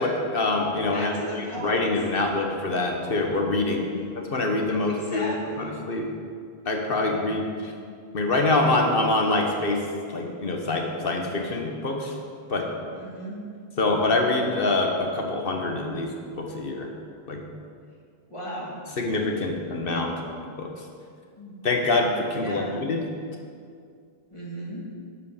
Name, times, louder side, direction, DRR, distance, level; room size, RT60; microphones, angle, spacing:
voice 1, 0.0-1.1 1.6-3.9 4.1-5.3 5.6-6.1 6.7-7.7 8.1-9.8 10.1-12.1 12.5-12.7 13.8-16.1 16.4-16.9 17.3-17.4 19.0-20.1 20.4-20.7 21.6-23.0, left 2 dB, 60° left, 2 dB, 1.4 m, -25 dB
voice 2, 0.9-2.2 3.9-4.1 4.9-5.8 12.9-13.5 18.3-18.8 21.4-21.6 22.4-22.9 24.3-24.8, equal, 30° left, -4 dB, 2.0 m, -36 dB
11.0 x 5.1 x 6.6 m, 2.2 s
omnidirectional pair, 1.1 m